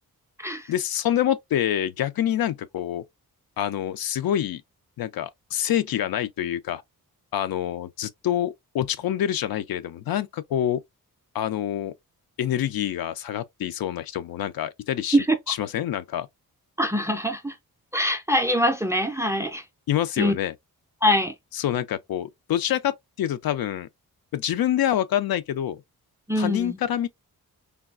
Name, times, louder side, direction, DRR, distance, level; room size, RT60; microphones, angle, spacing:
voice 1, 0.7-3.0 3.6-4.6 5.0-6.8 7.3-10.8 11.3-11.9 12.4-16.3 19.9-20.5 21.5-23.9 24.3-25.8 26.4-27.1, left 11 dB, 70° left, 0.5 m, -26 dB
voice 2, 16.8-17.5 17.9-19.6 20.2-20.3 21.0-21.3 26.3-26.8, equal, 10° right, 0.4 m, -23 dB
3.4 x 2.3 x 2.4 m
wide cardioid pair, 145°, 37 cm